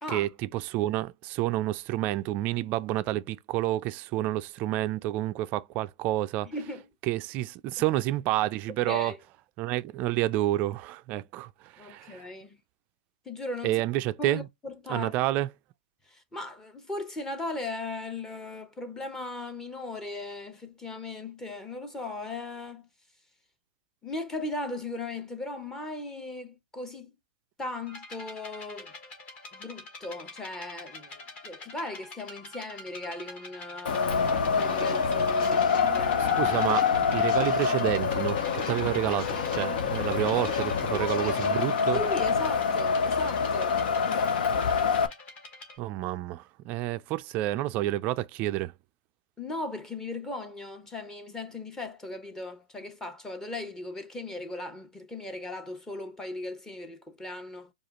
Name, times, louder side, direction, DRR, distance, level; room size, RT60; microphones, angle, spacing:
voice 1, 0.1-6.5 7.1-9.1 9.6-12.3 13.6-14.5 14.9-15.5 36.2-42.0 45.8-48.7, right 15 dB, 30° right, 0.3 m, -29 dB
voice 2, 6.4-6.9 8.9-9.2 11.8-12.6 13.3-13.8 14.2-15.1 16.1-22.9 24.0-27.1 27.6-28.9 29.5-36.5 40.9-41.4 41.9-43.8 44.0-44.7 49.4-57.7, left 2 dB, 10° left, 0.8 m, -38 dB
sound 1, 27.9-45.8, left 2 dB, 25° left, 1.4 m, -46 dB
Wind, 33.9-45.1, left 6 dB, 70° left, 0.7 m, -26 dB
sound 2, 34.1-41.7, left 2 dB, 55° left, 1.7 m, -36 dB
4.8 x 2.4 x 2.9 m
hypercardioid pair, 135°, 5 cm